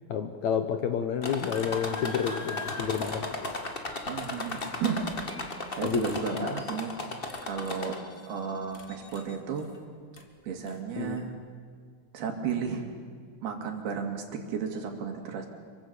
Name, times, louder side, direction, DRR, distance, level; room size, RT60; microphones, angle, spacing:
voice 1, 0.1-3.5 5.8-6.6 11.0-11.2, left 7 dB, 65° left, 8 dB, 1.9 m, -30 dB
sound 1, 1.2-8.2 8.7-9.4 10.2-10.3 10.7-10.8, left 2 dB, 40° left, 0.8 m, -36 dB
sound 2, 2.5-3.1 3.9-4.5 5.3-5.8 6.6-7.1, equal, 5° right, 6.6 m, -52 dB
voice 2, 4.1-5.0 5.7-7.0 7.4-8.0 8.3-9.7 10.4-11.3 12.1-12.9 13.4-15.5, right 6 dB, 80° right, 3 dB, 4.5 m, -33 dB
26.5 x 24.0 x 7.0 m, 2.1 s
omnidirectional pair, 4.4 m